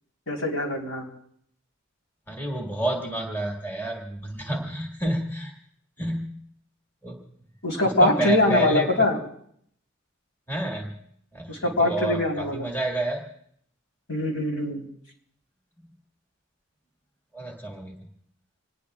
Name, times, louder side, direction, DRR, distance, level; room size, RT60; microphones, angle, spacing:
voice 1, 0.3-1.0 7.6-9.2 11.5-12.7 14.1-14.8, left 2 dB, 65° left, 0 dB, 3.8 m, -23 dB
voice 2, 2.3-5.5 6.0-6.4 7.0-7.3 7.8-9.1 10.5-10.9 11.3-13.3 17.3-18.1, right 1 dB, 10° left, 0 dB, 1.7 m, -30 dB
26.5 x 20.0 x 2.4 m, 0.67 s
head